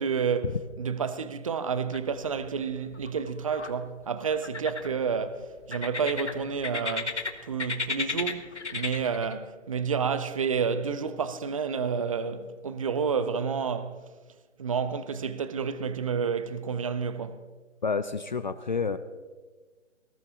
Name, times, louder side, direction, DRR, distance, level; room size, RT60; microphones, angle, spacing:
voice 1, 0.0-8.4 8.7-14.0 14.6-17.4, right 6 dB, 30° right, 0.6 m, -30 dB
sound 1, 1.9-2.5 2.8-3.7 4.3-5.2 5.7-7.3 7.6-9.3, left 4 dB, 70° left, 1.6 m, -33 dB
voice 2, 17.8-19.0, left 5 dB, 40° left, 0.5 m, -29 dB
19.0 x 14.5 x 3.7 m
figure-of-eight pair, 140°, 36 cm